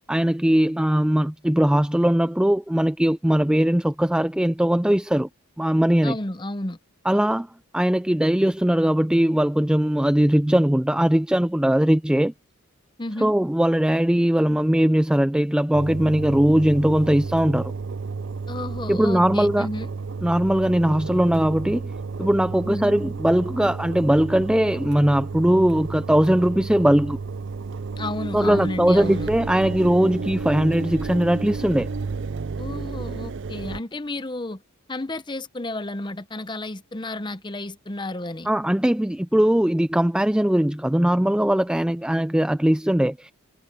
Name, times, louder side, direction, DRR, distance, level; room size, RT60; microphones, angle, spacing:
voice 1, 0.1-5.3 5.6-6.2 7.1-7.5 7.7-12.3 13.2-17.7 18.9-19.7 20.2-21.9 22.2-27.2 28.3-31.9 38.5-43.3, right 1 dB, 5° right, 0.3 m, -20 dB
voice 2, 6.0-6.8 13.0-13.3 18.5-19.9 22.6-23.0 28.0-29.3 32.6-34.6 34.9-38.5, left 2 dB, 20° left, 0.8 m, -32 dB
Engine, 15.7-33.8, right 4 dB, 55° right, 0.5 m, -32 dB
head